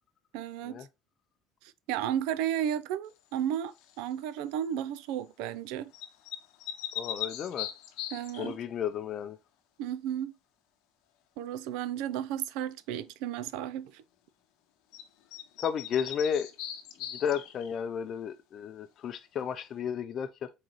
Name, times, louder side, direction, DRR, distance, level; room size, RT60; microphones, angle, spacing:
voice 1, 0.3-0.8 1.9-5.9 8.1-8.6 9.8-10.3 11.4-14.0, right 10 dB, 90° right, 0.4 m, -33 dB
sound 1, 3.8-4.1 5.9-8.5 14.9-15.0 15.3-17.7, left 12 dB, 80° left, 0.7 m, -39 dB
voice 2, 7.0-7.7 8.4-9.4 15.6-16.5 17.1-20.5, left 8 dB, 40° left, 0.5 m, -33 dB
3.9 x 3.9 x 3.0 m
cardioid pair, 160°, 0 cm